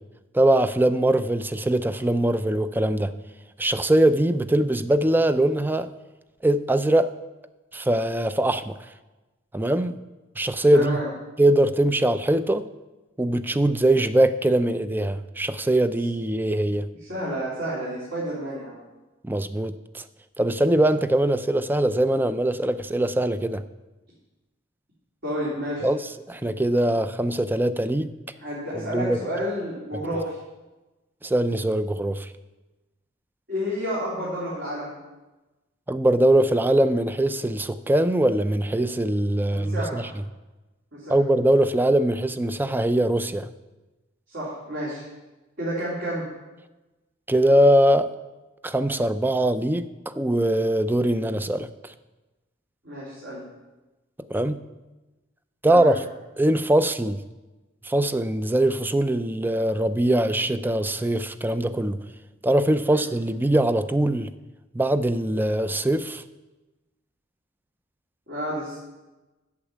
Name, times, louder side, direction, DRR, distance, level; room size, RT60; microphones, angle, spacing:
voice 1, 0.3-3.1 3.6-5.9 6.4-7.1 7.7-8.8 9.5-9.9 10.4-11.0 11.4-12.6 13.2-16.9 19.2-20.0 20.4-23.6 25.8-26.0 26.3-28.1 28.9-29.2 31.2-32.3 35.9-40.0 41.1-43.5 47.3-48.1 48.6-49.9 50.2-51.9 54.3-54.6 55.6-56.0 56.4-57.2 57.8-62.0 62.4-64.3 64.7-66.2, right 1 dB, 10° right, 12 dB, 0.4 m, -22 dB
voice 2, 10.7-11.1 17.0-18.8 25.2-25.9 28.4-30.4 33.5-34.9 39.5-40.0 40.9-41.2 44.3-45.0 45.6-46.3 52.8-53.4 55.7-55.9 62.9-63.0 68.3-68.8, equal, 60° right, -8 dB, 3.4 m, -30 dB
8.4 x 7.2 x 8.6 m, 1.1 s
head